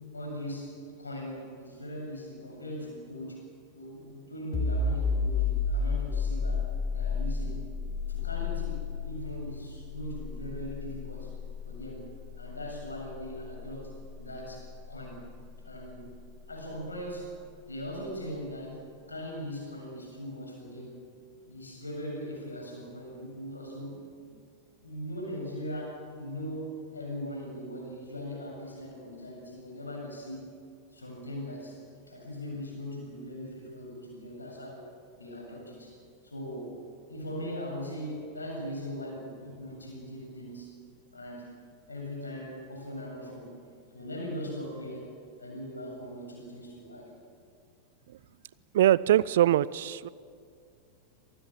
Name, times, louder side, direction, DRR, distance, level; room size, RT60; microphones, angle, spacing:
voice 1, 0.1-3.4 3.7-6.6 6.9-7.6 8.1-11.3 11.6-12.1 12.4-15.3 15.6-16.2 16.5-17.3 17.7-21.0 21.5-24.4 24.8-30.4 30.9-31.8 32.1-34.9 35.2-35.9 36.2-36.8 37.1-40.8 41.1-41.5 41.9-43.6 43.9-45.1 45.4-47.1, equal, 80° left, 0 dB, 7.6 m, -40 dB
sound 1, 4.5-16.0, left 4 dB, 25° left, 3.0 m, -33 dB
voice 2, 48.7-50.1, right 12 dB, 60° right, 21 dB, 0.5 m, -22 dB
26.0 x 19.0 x 7.4 m, 2.3 s
figure-of-eight pair, 90°, 0 cm